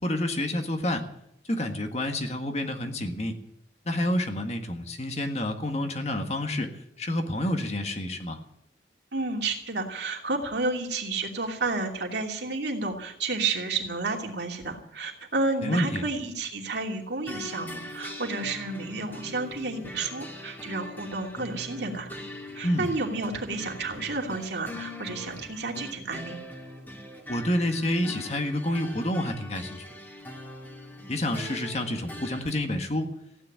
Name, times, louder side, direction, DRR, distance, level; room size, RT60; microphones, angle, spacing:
voice 1, 0.0-1.1 1.5-3.4 3.8-8.4 15.6-16.0 22.6-22.9 27.3-29.8 31.1-33.1, left 1 dB, 35° left, 5 dB, 1.6 m, -28 dB
voice 2, 9.1-22.2 22.5-26.4, right 3 dB, 70° right, 2 dB, 2.8 m, -31 dB
sound 1, 17.3-32.5, left 1 dB, 10° left, 2.2 m, -42 dB
15.5 x 10.0 x 9.0 m, 0.79 s
head